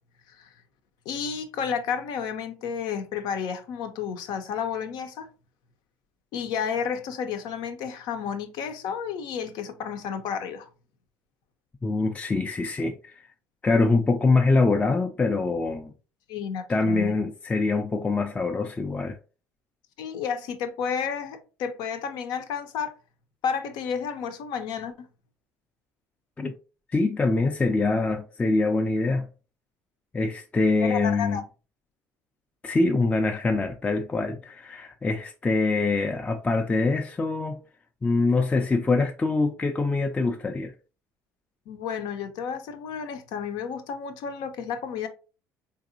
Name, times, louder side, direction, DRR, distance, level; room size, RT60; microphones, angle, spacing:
voice 1, 1.1-5.3 6.3-10.7 16.3-17.1 20.0-22.9 23.4-25.1 30.8-31.4 41.7-45.1, left 7 dB, 70° left, 0.7 m, -31 dB
voice 2, 11.8-13.2 13.6-15.9 16.7-19.2 26.4-26.5 26.9-29.3 30.1-31.4 32.6-37.6 38.0-40.7, left 3 dB, 20° left, 0.4 m, -24 dB
4.0 x 2.9 x 2.6 m
supercardioid pair, 80°, 7 cm